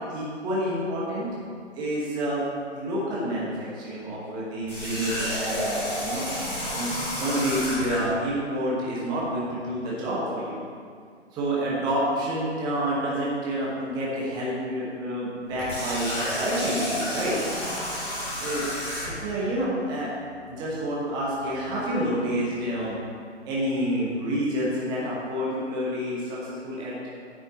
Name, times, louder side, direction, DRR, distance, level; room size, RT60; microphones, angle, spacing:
voice 1, 0.1-1.3 1.7-2.4 2.7-6.3 6.7-10.6 11.3-17.4 18.4-18.6 19.0-20.1 20.5-23.0 23.4-27.1, equal, 10° right, -6 dB, 1.1 m, -28 dB
Water tap faucet, 4.7-8.1 15.5-19.3, equal, 5° left, 2.3 m, -30 dB
8.8 x 6.3 x 4.1 m, 2.1 s
figure-of-eight pair, 145°, 35 cm